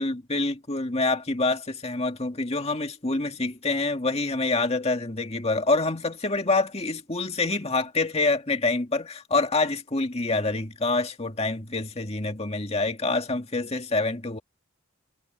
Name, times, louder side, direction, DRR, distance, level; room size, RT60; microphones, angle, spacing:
voice 1, 0.0-14.4, left 3 dB, 30° left, 2.0 m, -26 dB
head